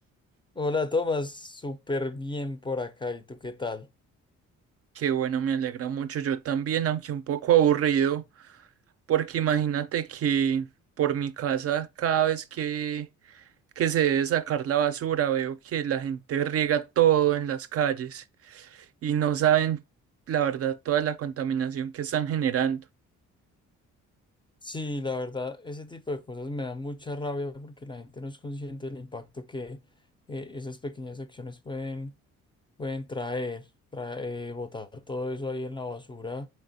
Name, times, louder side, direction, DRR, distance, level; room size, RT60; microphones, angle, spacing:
voice 1, 0.5-3.9 24.6-29.8 30.3-32.1 32.8-33.7 33.9-36.5, left 2 dB, 15° left, 0.4 m, -33 dB
voice 2, 5.0-8.5 9.1-10.7 11.0-13.1 13.8-19.8 20.3-22.8, right 10 dB, 50° right, 0.4 m, -26 dB
4.3 x 3.3 x 2.7 m
cardioid pair, 90°, 30 cm